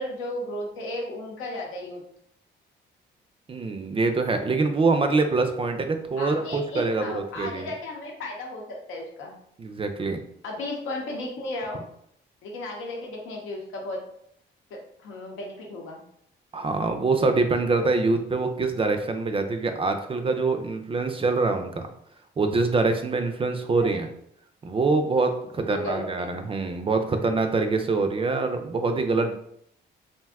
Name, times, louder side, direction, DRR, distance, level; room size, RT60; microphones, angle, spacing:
voice 1, 0.0-2.0 6.2-9.3 10.4-11.8 12.4-14.0 14.7-16.0 23.8-24.0 25.7-26.3, left 1 dB, 90° left, 0 dB, 0.7 m, -34 dB
voice 2, 3.5-7.7 9.6-10.2 16.5-21.9 22.4-24.1 24.6-29.3, right 3 dB, 30° right, 6 dB, 0.3 m, -24 dB
2.6 x 2.2 x 3.5 m, 0.71 s
cardioid pair, 90°, 20 cm